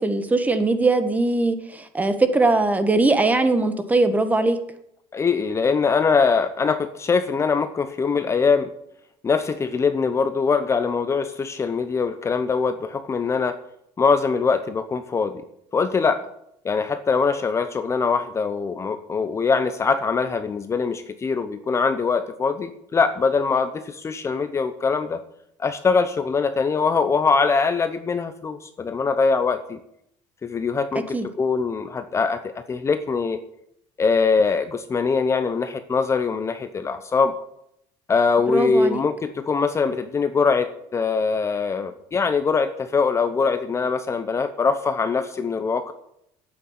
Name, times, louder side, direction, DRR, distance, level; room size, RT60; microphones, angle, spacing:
voice 1, 0.0-4.6 31.1-31.3 38.5-39.0, right 2 dB, 15° right, 9 dB, 1.4 m, -20 dB
voice 2, 5.1-8.7 9.2-13.6 14.0-15.4 15.7-16.2 16.6-25.2 25.6-29.8 30.4-33.4 34.0-37.4 38.1-45.9, left 5 dB, 25° left, 10 dB, 0.9 m, -22 dB
9.5 x 8.8 x 9.6 m, 0.76 s
cardioid pair, 130°, 11 cm